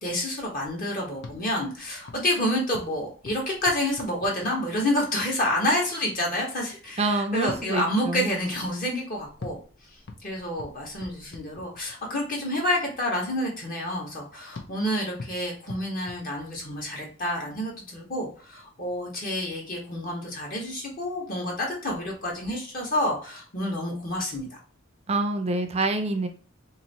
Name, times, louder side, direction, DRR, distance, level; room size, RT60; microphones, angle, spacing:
voice 1, 0.0-9.6 10.2-24.5, left 1 dB, 45° left, -2 dB, 1.4 m, -29 dB
sound 1, 1.1-5.0 7.3-12.2 14.5-17.0, left 3 dB, 60° left, 0.6 m, -45 dB
voice 2, 7.0-8.3 25.1-26.3, right 2 dB, 30° right, 5 dB, 0.5 m, -26 dB
3.0 x 2.6 x 4.1 m, 0.40 s
head